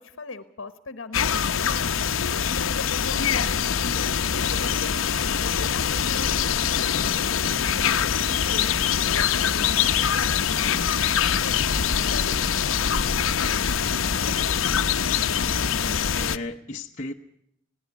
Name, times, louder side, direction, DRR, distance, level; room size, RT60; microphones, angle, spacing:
voice 1, 0.0-1.8 2.4-8.7 9.1-14.9, left 3 dB, 70° left, 11 dB, 1.1 m, -40 dB
Lajamanu Billabong Atmos, 1.1-16.4, left 7 dB, 85° left, 0.8 m, -24 dB
voice 2, 15.8-17.1, left 2 dB, 35° left, 0 dB, 0.9 m, -35 dB
20.5 x 16.5 x 8.2 m, 0.72 s
head